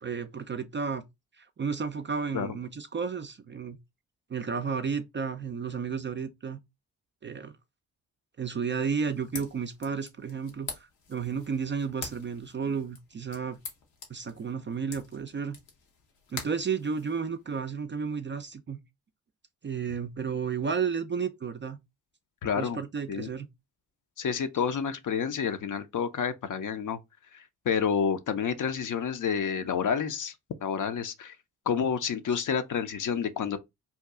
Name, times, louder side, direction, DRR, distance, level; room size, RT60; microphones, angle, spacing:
voice 1, 0.0-1.0 1.4-3.8 4.3-6.6 7.2-7.5 8.4-13.6 14.1-15.6 16.3-18.8 19.6-21.8 22.6-23.5, right 6 dB, 30° right, 0.4 m, -32 dB
sound 1, 9.0-17.6, left 5 dB, 85° left, 1.0 m, -46 dB
voice 2, 22.4-22.8 23.1-23.3 24.2-27.0 27.3-30.4 30.6-31.4 31.7-33.6, left 7 dB, 45° left, 0.6 m, -29 dB
2.8 x 2.3 x 3.5 m
hypercardioid pair, 40°, 44 cm